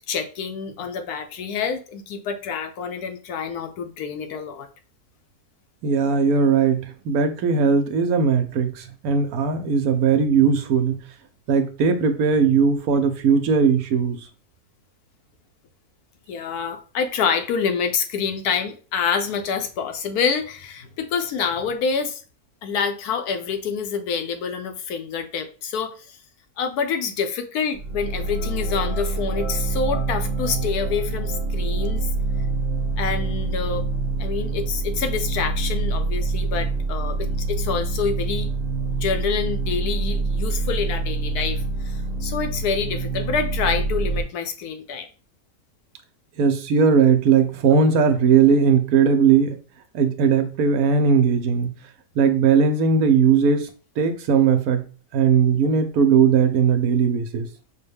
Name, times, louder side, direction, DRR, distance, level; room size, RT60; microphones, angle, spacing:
voice 1, 0.1-4.7 16.3-22.2 22.6-26.2 26.6-32.1 33.0-33.8 34.2-38.5 38.9-45.1, left 6 dB, 85° left, 7 dB, 1.2 m, -27 dB
voice 2, 5.8-11.0 11.5-14.2 46.4-49.6 49.9-51.8 52.2-53.7 54.0-54.9 55.1-57.5, right 6 dB, 80° right, 8 dB, 1.1 m, -18 dB
sound 1, 27.8-44.2, right 3 dB, 5° right, 1.0 m, -26 dB
5.4 x 2.2 x 3.4 m, 0.37 s
omnidirectional pair, 1.6 m